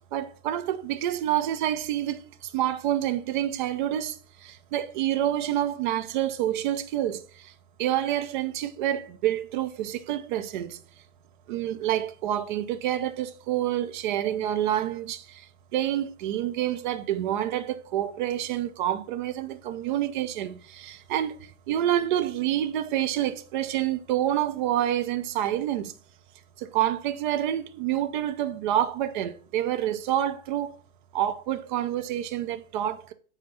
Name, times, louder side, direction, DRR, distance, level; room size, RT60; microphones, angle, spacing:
voice 1, 0.1-2.2 2.5-4.2 4.7-7.2 7.8-10.8 11.5-15.2 15.7-21.4 21.7-25.9 26.6-30.7 31.1-33.1, right 12 dB, 35° right, 0.7 m, -27 dB
7.8 x 4.3 x 5.6 m
hypercardioid pair, 125°, 44 cm